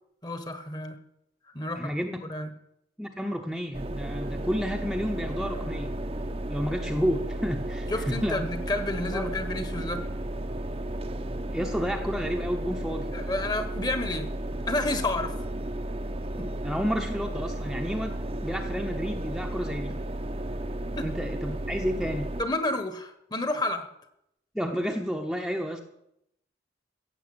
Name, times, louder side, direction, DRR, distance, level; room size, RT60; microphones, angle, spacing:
voice 1, 0.2-1.0 1.5-1.9 2.3-2.5 7.9-10.0 13.1-14.3 14.7-15.3 16.4-16.5 21.0-21.1 22.4-23.9, left 2 dB, 20° left, 9 dB, 1.3 m, -30 dB
voice 2, 1.8-2.2 3.0-6.0 6.5-8.4 9.1-9.3 11.5-13.1 16.6-19.9 21.0-22.3 24.5-25.8, equal, ahead, 2 dB, 0.9 m, -31 dB
sound 1, 3.7-22.4, right 1 dB, 30° right, 0.8 m, -33 dB
16.0 x 7.2 x 8.7 m, 0.79 s
head